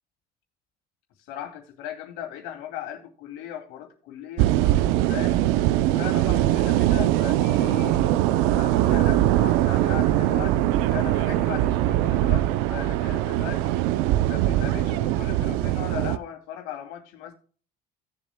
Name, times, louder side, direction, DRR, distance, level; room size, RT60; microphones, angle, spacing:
voice 1, 1.3-4.5 5.1-13.8 14.3-17.3, left 10 dB, 85° left, 2.6 m, -38 dB
sound 1, 4.4-16.2, right 14 dB, 85° right, 0.6 m, -22 dB
18.0 x 7.3 x 2.2 m
cardioid pair, 150°, 21 cm